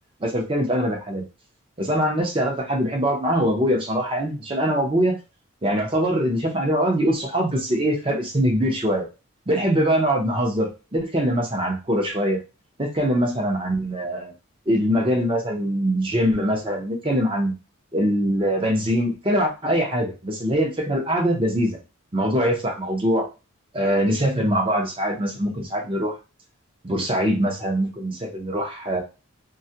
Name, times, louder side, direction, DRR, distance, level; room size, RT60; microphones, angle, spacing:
voice 1, 0.2-1.2 1.8-5.2 5.6-9.1 9.5-12.4 12.8-14.3 14.7-17.5 17.9-21.8 22.1-23.3 23.7-26.1 26.8-29.0, equal, 25° right, 1 dB, 0.5 m, -23 dB
2.3 x 2.1 x 2.7 m, 0.29 s
head